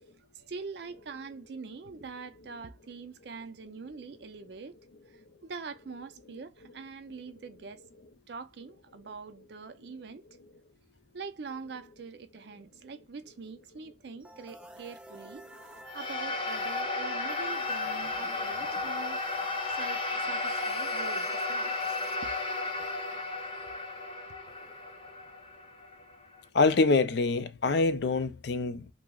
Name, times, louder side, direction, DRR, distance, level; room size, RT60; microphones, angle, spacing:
voice 1, 0.2-4.8 5.1-7.9 8.3-10.2 11.1-15.4 15.9-19.2 19.8-22.0 22.2-22.3 22.8-22.9, right 5 dB, 60° right, 0.5 m, -44 dB
sound 1, 14.2-26.0, right 1 dB, 5° right, 0.5 m, -50 dB
sound 2, 15.9-26.4, left 3 dB, 25° left, 0.7 m, -33 dB
voice 2, 26.5-28.9, left 3 dB, 60° left, 0.4 m, -25 dB
6.0 x 2.0 x 2.3 m
head